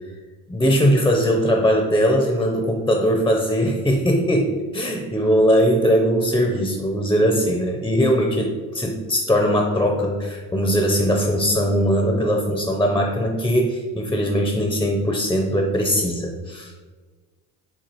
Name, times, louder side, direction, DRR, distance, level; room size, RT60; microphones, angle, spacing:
voice 1, 0.5-16.9, equal, 10° left, 2 dB, 0.5 m, -20 dB
7.2 x 2.5 x 2.9 m, 1.4 s
supercardioid pair, 95°, 38 cm